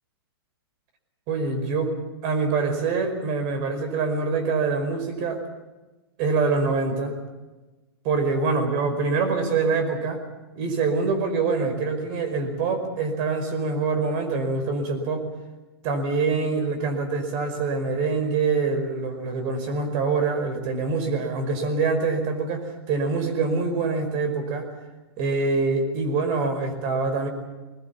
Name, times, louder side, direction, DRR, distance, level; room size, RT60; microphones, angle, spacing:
voice 1, 1.3-1.9 2.2-5.4 6.2-7.2 8.0-10.2 10.5-15.2 15.8-24.7 25.2-27.3, right 4 dB, 45° right, 8 dB, 5.1 m, -25 dB
21.5 x 20.5 x 7.2 m, 1.2 s
hypercardioid pair, 130°, 13 cm